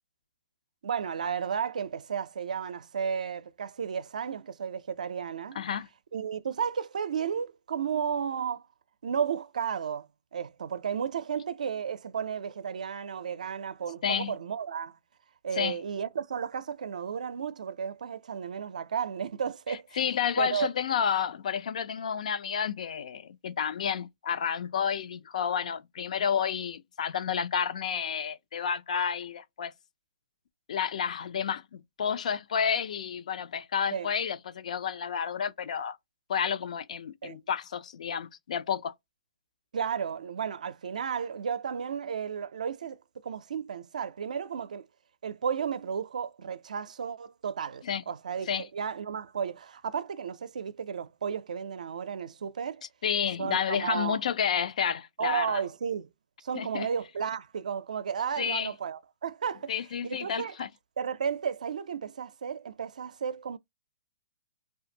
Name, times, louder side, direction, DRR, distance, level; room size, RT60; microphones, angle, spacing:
voice 1, 0.8-5.6 6.1-8.6 9.0-10.1 10.3-15.0 15.4-19.9 20.4-20.7 33.9-34.1 37.2-37.5 39.7-43.0 43.2-44.9 45.2-52.8 53.4-54.2 55.2-56.1 56.4-59.7 60.0-60.6 61.0-63.6, right 7 dB, 80° right, 0.4 m, -33 dB
voice 2, 5.5-5.9 14.0-14.4 15.6-15.8 19.7-29.7 30.7-36.0 36.3-38.9 47.8-48.0 48.5-48.6 53.0-55.6 56.5-56.9 58.4-58.7 59.7-60.7, left 7 dB, 70° left, 0.4 m, -30 dB
2.5 x 2.3 x 2.7 m
hypercardioid pair, 150°, 4 cm